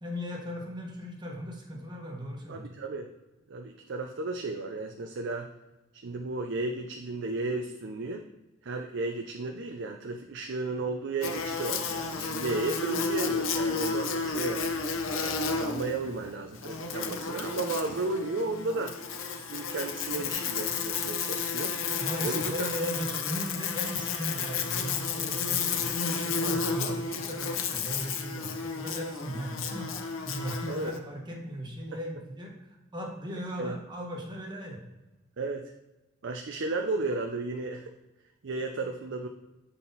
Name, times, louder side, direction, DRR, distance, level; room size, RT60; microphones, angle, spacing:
voice 1, 0.0-2.7 22.0-34.8, equal, 20° right, 0 dB, 1.2 m, -37 dB
voice 2, 2.5-3.1 3.5-5.5 6.0-8.2 8.6-14.6 15.1-19.0 19.3-21.8 22.2-22.7 30.7-30.9 33.6-33.7 35.4-35.7 36.2-37.9 38.4-39.3, right 3 dB, 60° right, 4 dB, 0.5 m, -34 dB
Buzz, 11.2-31.0, left 5 dB, 70° left, 0.7 m, -32 dB
7.5 x 4.1 x 4.0 m, 1.0 s
head